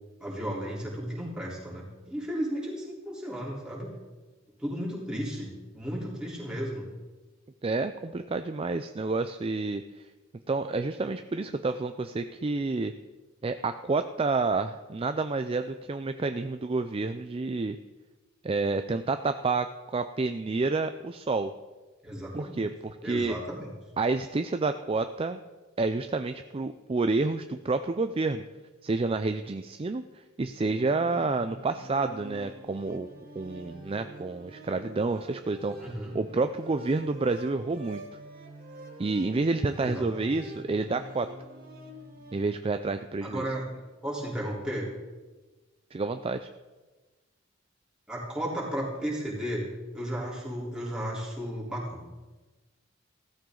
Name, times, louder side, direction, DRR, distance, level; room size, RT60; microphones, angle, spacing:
voice 1, 0.2-3.9 4.6-6.9 22.0-22.6 23.0-23.7 35.8-36.1 39.7-40.4 43.2-43.7 44.0-44.9 48.1-49.7 49.9-52.1, equal, 5° right, -6 dB, 3.7 m, -34 dB
voice 2, 7.6-9.8 10.5-12.9 13.4-17.8 18.4-21.5 22.3-23.4 24.0-25.4 25.8-28.4 28.8-30.0 30.4-33.1 33.4-38.0 39.0-41.3 42.3-43.5 45.9-46.5, right 3 dB, 25° right, 8 dB, 0.4 m, -29 dB
sound 1, 30.6-42.4, right 1 dB, 45° right, 2.2 m, -46 dB
16.0 x 14.0 x 3.9 m, 1.2 s
head